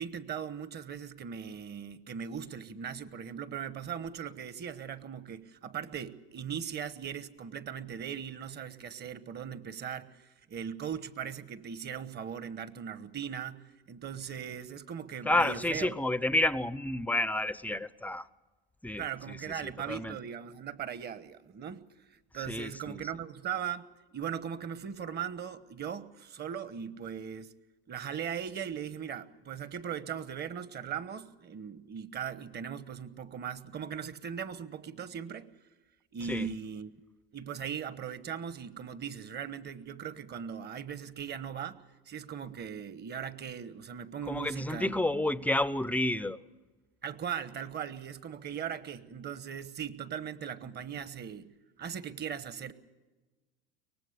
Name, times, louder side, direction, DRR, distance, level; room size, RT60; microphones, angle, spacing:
voice 1, 0.0-15.9 19.0-21.8 22.3-23.8 24.1-27.5 27.9-35.5 36.1-36.9 37.3-45.2 47.0-51.5 51.8-52.7, right 8 dB, 35° right, 15 dB, 1.2 m, -39 dB
voice 2, 15.2-18.3 18.8-20.2 22.3-23.1 36.3-36.5 44.2-46.4, left 1 dB, 5° left, 17 dB, 0.6 m, -30 dB
24.0 x 18.5 x 6.7 m, 1.2 s
supercardioid pair, 105°, 30 cm